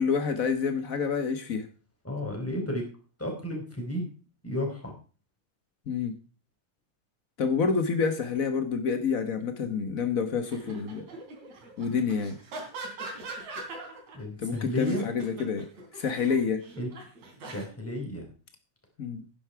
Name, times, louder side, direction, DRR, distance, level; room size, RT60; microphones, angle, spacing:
voice 1, 0.0-1.7 5.9-6.2 7.4-11.0 11.8-12.4 14.4-15.7 15.9-16.6 19.0-19.2, left 5 dB, 85° left, 8 dB, 0.7 m, -28 dB
voice 2, 2.0-2.8 3.2-4.1 4.4-4.9 14.1-15.1 16.8-16.9 17.5-18.3, left 1 dB, 5° left, 1 dB, 4.2 m, -32 dB
sound 1, 10.4-14.2 14.6-17.6, right 2 dB, 70° right, 4.5 m, -42 dB
11.0 x 10.5 x 4.6 m, 0.36 s
omnidirectional pair, 3.3 m